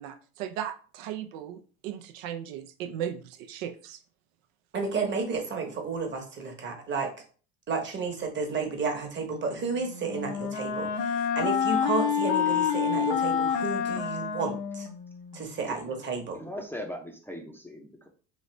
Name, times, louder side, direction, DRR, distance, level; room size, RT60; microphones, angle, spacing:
voice 1, 0.0-4.0, right 10 dB, 85° right, 9 dB, 0.6 m, -37 dB
voice 2, 4.7-7.1 7.7-14.9 15.3-16.4, right 4 dB, 30° right, 3 dB, 1.0 m, -32 dB
Wind instrument woodwind instrument, 9.6-15.4, left 7 dB, 65° left, 0.7 m, -28 dB
voice 3, 16.3-18.1, left 1 dB, 5° left, 1 dB, 0.5 m, -39 dB
3.2 x 2.6 x 3.1 m, 0.40 s
supercardioid pair, 100°, 39 cm